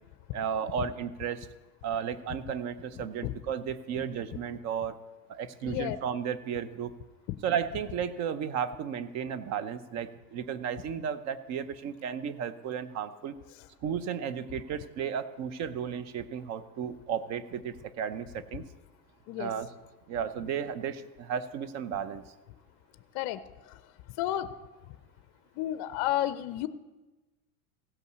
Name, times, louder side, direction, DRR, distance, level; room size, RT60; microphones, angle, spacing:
voice 1, 0.3-1.5 1.8-5.0 5.3-6.9 7.4-13.4 13.8-18.6 19.4-19.7 20.1-22.2, right 8 dB, 40° right, 13 dB, 0.8 m, -34 dB
voice 2, 5.6-6.0 19.3-19.5 23.1-23.4 23.7-23.8 24.2-24.5 25.6-26.7, left 13 dB, 40° left, 13 dB, 0.6 m, -31 dB
16.0 x 5.4 x 6.8 m, 1.1 s
supercardioid pair, 130°, 43 cm